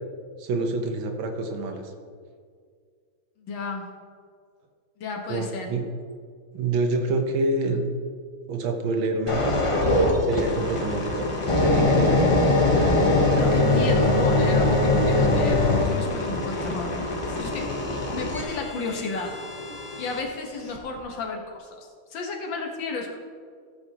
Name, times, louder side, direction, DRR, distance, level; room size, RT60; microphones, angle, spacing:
voice 1, 0.4-1.9 5.3-5.8 6.5-7.9 8.5-9.6 10.2-11.3 11.6-12.3, right 2 dB, 85° right, 5 dB, 1.8 m, -27 dB
voice 2, 3.4-3.9 5.0-5.7 13.3-17.7 18.1-19.3 20.0-23.2, left 3 dB, 75° left, 2 dB, 1.9 m, -33 dB
sound 1, 9.3-20.2 20.8-21.0, left 2 dB, 25° left, 0.7 m, -22 dB
14.5 x 8.5 x 2.9 m, 2.1 s
omnidirectional pair, 2.1 m